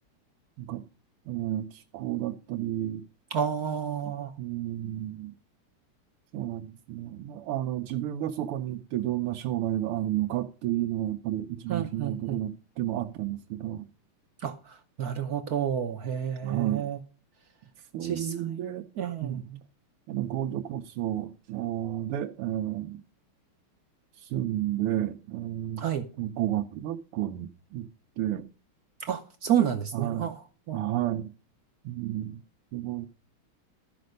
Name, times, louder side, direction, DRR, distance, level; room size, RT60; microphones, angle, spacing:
voice 1, 1.3-3.1 4.4-5.3 6.3-13.9 16.4-16.9 17.9-18.9 19.2-19.5 20.1-23.0 24.1-25.9 26.2-27.9 28.2-28.5 29.9-30.3 30.7-31.3 31.8-32.4 32.7-33.1, right 13 dB, 90° right, 1.6 m, -31 dB
voice 2, 3.3-4.3 11.7-12.4 14.4-17.0 18.0-18.3 19.0-19.6 25.8-26.1 29.0-30.3 30.7-30.8, right 9 dB, 65° right, 0.9 m, -30 dB
13.5 x 5.2 x 6.4 m
omnidirectional pair, 2.4 m